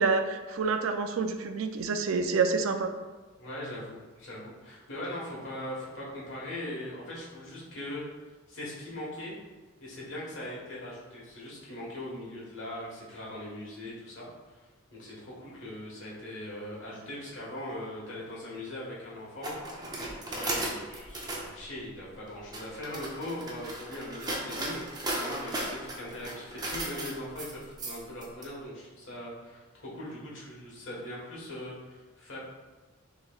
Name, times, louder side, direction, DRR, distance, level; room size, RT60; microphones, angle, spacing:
voice 1, 0.0-2.9, right 4 dB, 75° right, 7 dB, 0.4 m, -28 dB
voice 2, 3.4-8.1 8.5-9.3 9.8-14.3 14.9-19.5 20.3-32.4, left 1 dB, 60° left, -5 dB, 1.4 m, -40 dB
sound 1, 19.4-21.5 22.3-28.4, right 1 dB, 20° right, 0.6 m, -36 dB
6.2 x 3.1 x 2.4 m, 1.3 s
head